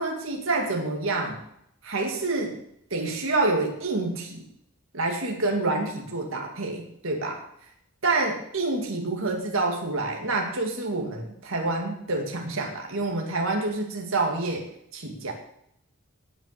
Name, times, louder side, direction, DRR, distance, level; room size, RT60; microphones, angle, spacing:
voice 1, 0.0-1.4 1.8-2.6 2.9-4.4 4.9-7.4 8.0-15.3, right 2 dB, 65° right, 1 dB, 2.2 m, -27 dB
18.0 x 6.0 x 6.7 m, 0.72 s
head